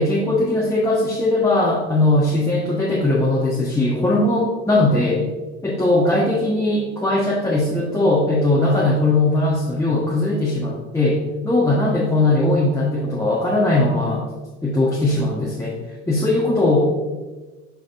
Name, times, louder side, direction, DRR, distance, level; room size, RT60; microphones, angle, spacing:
voice 1, 0.0-5.2 5.6-14.2 14.6-15.8 16.1-16.9, left 2 dB, 5° left, -5 dB, 1.1 m, -19 dB
11.5 x 3.9 x 2.5 m, 1.3 s
hypercardioid pair, 75°, 47 cm